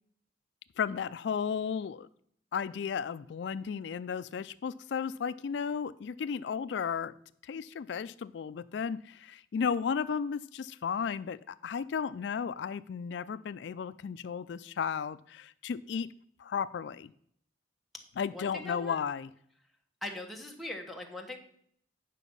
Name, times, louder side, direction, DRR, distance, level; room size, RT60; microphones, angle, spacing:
voice 1, 0.8-2.1 2.5-7.1 7.4-16.1 16.4-17.1 18.2-19.3, left 6 dB, 65° left, 14 dB, 0.3 m, -34 dB
voice 2, 18.3-19.0 20.0-21.4, left 2 dB, ahead, 3 dB, 1.2 m, -41 dB
9.2 x 5.8 x 5.4 m, 0.64 s
head